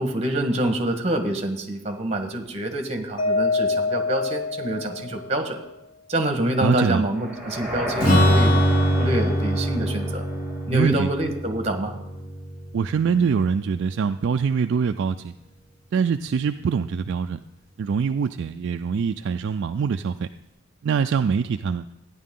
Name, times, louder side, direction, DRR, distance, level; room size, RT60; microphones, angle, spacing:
voice 1, 0.0-5.6 6.1-8.6 9.0-10.2 10.7-11.9, right 1 dB, 30° right, 5 dB, 1.4 m, -26 dB
Mallet percussion, 3.2-5.4, left 3 dB, 65° left, 1.3 m, -25 dB
voice 2, 6.6-7.0 10.7-11.1 12.7-15.3 15.9-17.4 17.8-20.3 20.8-21.8, right 6 dB, 55° right, 9 dB, 0.3 m, -24 dB
sound 1, 7.1-11.2, equal, ahead, 4.4 m, -33 dB
Strum, 8.0-13.6, equal, 40° left, 3.4 m, -23 dB
14.5 x 10.0 x 3.7 m, 0.91 s
head